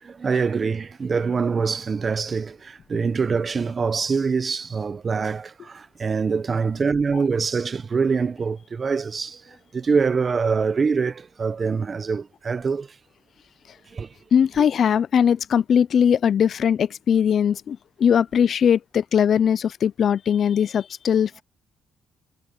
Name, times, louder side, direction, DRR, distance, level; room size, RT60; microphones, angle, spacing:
voice 1, 0.0-12.9 13.9-14.1 14.6-14.7, right 5 dB, 40° right, 1.0 m, -24 dB
voice 2, 14.3-21.4, left 8 dB, 55° left, 0.4 m, -20 dB
cardioid pair, 90°, 0 cm